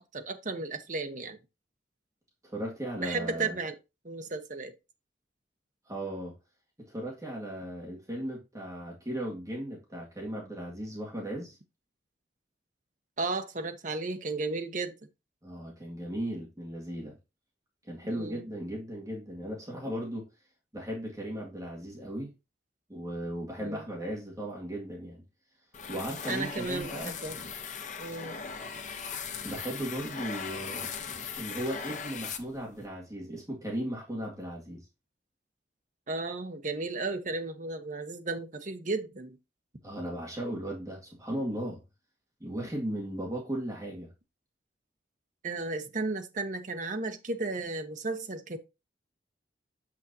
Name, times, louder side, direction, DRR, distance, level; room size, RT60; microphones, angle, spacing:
voice 1, 0.1-1.4 3.0-3.8 4.0-4.7 13.2-14.9 18.0-18.4 23.6-23.8 26.3-27.3 28.0-28.4 36.1-39.4 45.4-48.6, right 3 dB, 45° right, 1.0 m, -34 dB
voice 2, 2.4-3.6 5.9-6.3 6.9-11.6 15.4-17.1 17.9-20.3 20.7-22.3 22.9-25.2 25.9-27.2 29.4-30.9 31.4-34.8 39.8-41.8 42.4-44.1, right 1 dB, 20° right, 2.0 m, -36 dB
sound 1, 25.7-32.9, left 6 dB, 40° left, 0.8 m, -39 dB
7.3 x 6.2 x 2.8 m
head